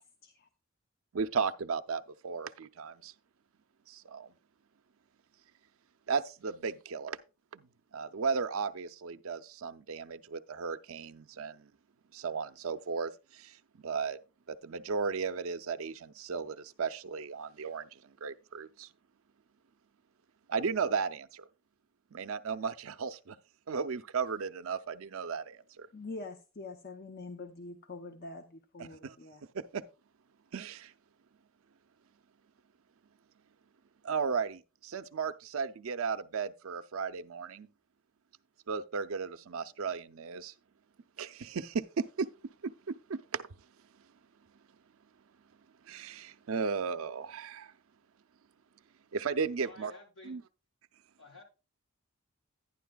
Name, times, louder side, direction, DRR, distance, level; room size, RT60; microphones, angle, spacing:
voice 1, 1.1-3.1 3.9-4.3 6.1-7.2 7.5-7.7 7.9-11.7 12.1-14.2 14.5-18.9 20.5-21.5 22.1-23.4 23.7-25.9 28.8-29.2 29.5-29.8 30.5-30.9 34.0-37.7 38.7-40.5 41.2-42.3 42.6-43.4 45.9-47.7 49.1-49.9 50.2-50.4, right 5 dB, 70° right, 0.5 m, -35 dB
voice 2, 25.9-29.4, left 3 dB, 45° left, 0.7 m, -45 dB
voice 3, 49.6-50.4 51.2-51.4, left 2 dB, 75° left, 4.9 m, -52 dB
11.5 x 10.0 x 2.3 m
head